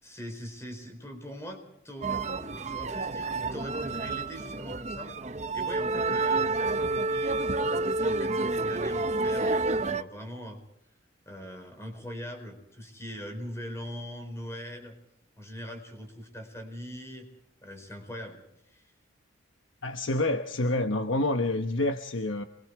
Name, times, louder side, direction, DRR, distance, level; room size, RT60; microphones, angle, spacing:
voice 1, 0.0-5.1 5.5-10.6 11.3-14.9 15.4-17.3 17.6-18.4 18.7-18.9, equal, 15° left, 5 dB, 4.6 m, -42 dB
sound 1, 2.0-10.0, right 3 dB, 35° right, 0.9 m, -29 dB
voice 2, 19.8-22.4, left 2 dB, 80° left, 7 dB, 1.1 m, -28 dB
27.5 x 22.0 x 4.8 m, 0.77 s
head